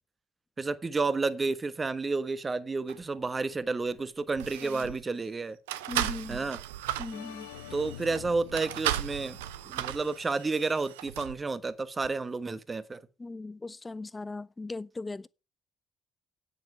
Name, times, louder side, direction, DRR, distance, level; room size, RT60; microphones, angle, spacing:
voice 1, 0.6-5.6 6.3-6.6 7.7-9.4 9.7-13.0, right 3 dB, 25° right, 1.2 m, -31 dB
sound 1, 2.9-3.0 3.9-4.0 4.3-5.0 5.7-11.4 12.0-12.1, right 13 dB, 75° right, 0.6 m, -36 dB
voice 2, 4.6-4.9 5.9-6.5 7.0-7.5 13.2-15.3, left 3 dB, 20° left, 0.6 m, -39 dB
sound 2, 7.1-10.9, left 13 dB, 75° left, 0.8 m, -47 dB
9.7 x 9.2 x 4.9 m
figure-of-eight pair, 50°, 0 cm